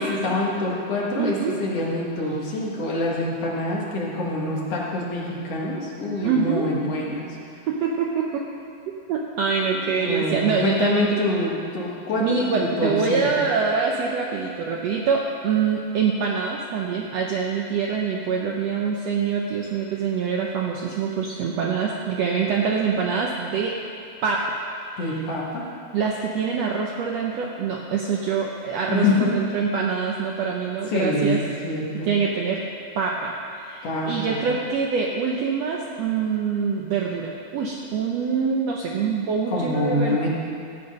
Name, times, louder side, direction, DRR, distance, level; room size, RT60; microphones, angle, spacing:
voice 1, 0.0-7.3 10.0-13.3 25.0-25.7 28.9-29.3 30.9-32.1 33.8-34.4 39.5-40.3, left 2 dB, 55° left, -4 dB, 2.4 m, -25 dB
voice 2, 1.2-1.6 6.2-6.7 7.7-8.5 9.1-11.2 12.2-23.8 24.2-24.6 25.0-25.2 25.9-31.4 32.1-32.7 32.9-40.3, right 6 dB, 75° right, -1 dB, 1.6 m, -25 dB
14.5 x 8.9 x 5.4 m, 2.4 s
omnidirectional pair, 3.8 m